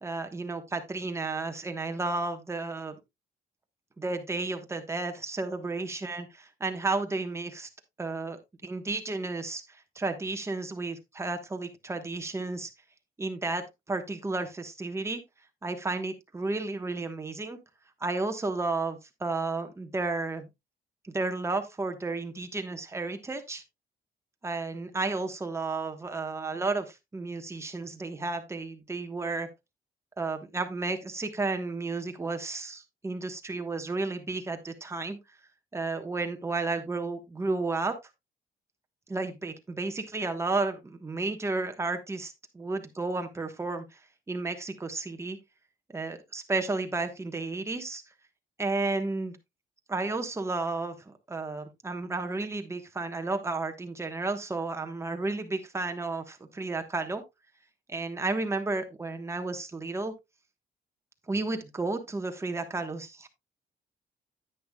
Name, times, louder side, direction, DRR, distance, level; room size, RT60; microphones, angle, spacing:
voice 1, 0.0-3.0 4.0-7.7 8.0-12.7 13.2-15.2 15.6-17.6 18.0-20.5 21.1-23.6 24.4-29.5 30.2-35.2 35.7-37.9 39.1-44.0 44.3-45.4 45.9-48.0 48.6-49.4 49.9-57.2 57.9-60.1 61.3-63.3, right 3 dB, 15° right, 1.2 m, -32 dB
10.0 x 9.2 x 2.3 m
cardioid pair, 125°, 17 cm